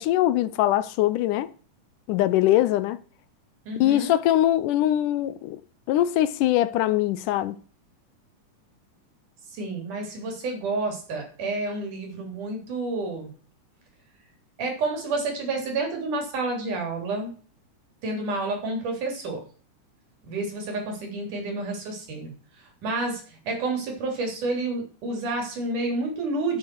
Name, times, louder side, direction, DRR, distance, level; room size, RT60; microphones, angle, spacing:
voice 1, 0.0-1.5 2.1-3.0 3.8-5.6 5.9-7.6, left 13 dB, 85° left, 2.3 m, -22 dB
voice 2, 3.7-4.2 9.5-13.3 14.6-17.3 18.0-19.4 20.3-22.3 22.8-26.6, right 2 dB, 75° right, 5.1 m, -29 dB
11.0 x 6.6 x 6.2 m
omnidirectional pair, 3.6 m